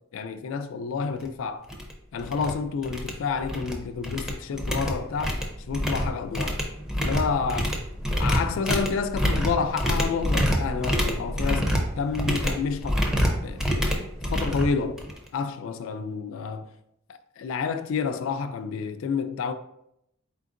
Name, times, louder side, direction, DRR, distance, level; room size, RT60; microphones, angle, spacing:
voice 1, 0.1-1.7 2.1-6.6 7.0-7.8 8.2-13.0 13.4-15.0 15.3-16.7 17.4-19.5, left 5 dB, 75° left, 0.3 m, -29 dB
sound 1, 1.2-1.3 1.7-1.9 2.2-2.5 2.8-3.7 4.0-15.3, equal, 5° right, 0.5 m, -27 dB
4.2 x 3.7 x 2.5 m
head